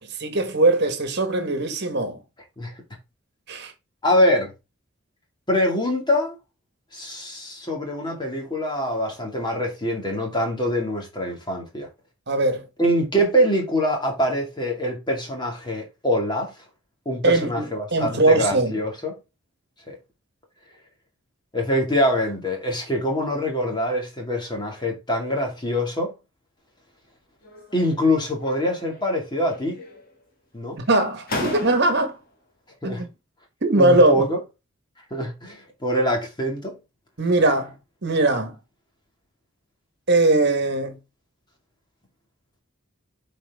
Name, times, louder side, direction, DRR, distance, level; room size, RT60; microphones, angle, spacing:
voice 1, 0.2-2.2 3.5-3.7 12.3-12.7 17.2-17.6 17.9-18.7 30.8-32.1 32.8-33.1 33.6-34.3 37.2-37.8 38.0-38.6 40.1-41.0, right 2 dB, 50° right, 1.5 m, -20 dB
voice 2, 4.0-4.5 5.5-6.3 6.9-11.9 12.8-16.5 17.1-19.2 19.9-20.0 21.5-26.1 27.7-29.8 30.5-30.8 32.8-33.0 33.8-34.4 35.1-36.8, equal, 20° left, 2.2 m, -24 dB
sound 1, 27.4-28.0 28.4-29.2 29.4-30.2 30.8-30.9 31.3-32.2, left 2 dB, 45° left, 2.3 m, -34 dB
8.3 x 4.4 x 3.6 m
head